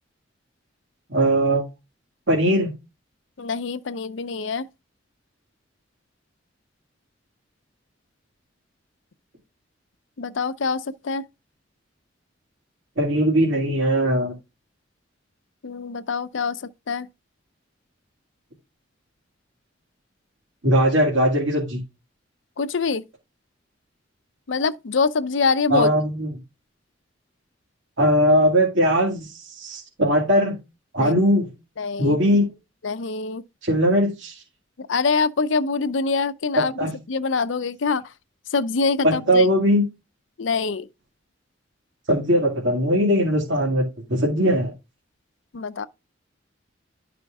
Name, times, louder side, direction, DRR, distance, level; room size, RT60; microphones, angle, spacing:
voice 1, 1.1-1.6 2.3-2.7 13.0-14.3 20.6-21.8 25.7-26.3 28.0-30.5 30.9-31.5 32.0-32.5 33.6-34.4 36.5-36.9 39.0-39.8 42.1-44.7, equal, 80° right, 2.3 m, -20 dB
voice 2, 3.4-4.7 10.2-11.2 15.6-17.1 22.6-23.0 24.5-25.9 31.0-31.1 31.8-32.2 32.8-33.4 34.8-36.7 37.1-38.0 38.5-39.5 40.4-40.9 45.5-45.9, left 4 dB, 80° left, 0.6 m, -24 dB
11.5 x 5.0 x 3.5 m
head